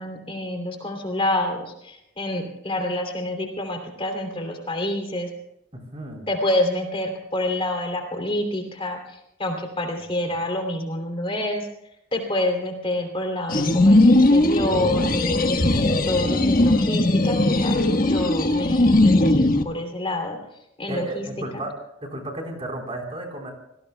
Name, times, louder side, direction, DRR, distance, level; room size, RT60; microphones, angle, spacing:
voice 1, 0.0-5.3 6.3-11.7 12.1-17.8 18.0-20.4 20.8-21.3 21.5-21.6, left 1 dB, 30° left, 3 dB, 3.0 m, -27 dB
voice 2, 5.7-6.3 20.9-21.7 22.0-23.5, right 1 dB, 30° right, 2 dB, 4.0 m, -33 dB
sound 1, 13.5-19.6, left 1 dB, 45° left, 1.4 m, -18 dB
29.0 x 19.0 x 2.3 m, 0.85 s
head